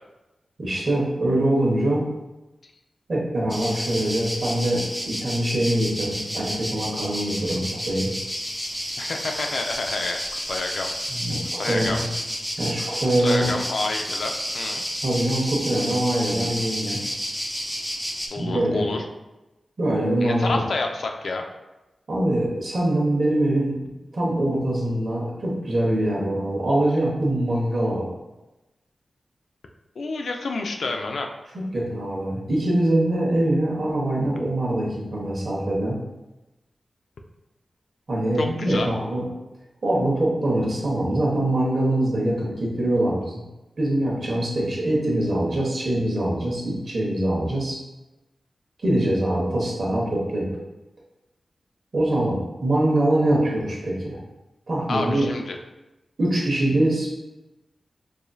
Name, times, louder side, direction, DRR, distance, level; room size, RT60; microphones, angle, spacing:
voice 1, 0.6-2.0 3.1-8.1 11.1-12.1 12.6-13.6 15.0-17.0 18.4-18.9 19.8-20.6 22.1-23.8 24.1-28.1 31.7-36.0 38.1-39.2 39.8-43.4 43.8-47.8 48.8-50.5 51.9-54.2 54.7-55.3 56.2-57.1, right 1 dB, 50° right, -4 dB, 1.1 m, -23 dB
sound 1, 3.5-18.3, equal, 5° left, 0.4 m, -31 dB
voice 2, 9.0-10.9 11.6-12.0 13.2-14.8 18.3-19.0 20.2-21.4 30.0-31.3 38.4-38.9 54.9-55.6, left 3 dB, 80° left, 3 dB, 0.4 m, -29 dB
4.8 x 2.6 x 2.3 m, 1.0 s
wide cardioid pair, 115°, 0 cm